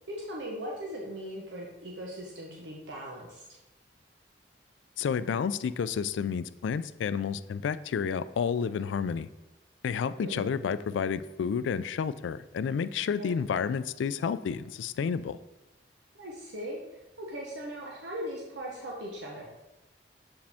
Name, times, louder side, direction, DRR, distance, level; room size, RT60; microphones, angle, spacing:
voice 1, 0.1-3.4 10.2-10.5 13.2-13.4 16.1-19.5, equal, 85° right, -2 dB, 1.0 m, -39 dB
voice 2, 5.0-9.3 9.8-15.4, left 6 dB, 85° left, 14 dB, 0.3 m, -30 dB
7.4 x 4.8 x 3.5 m, 1.0 s
head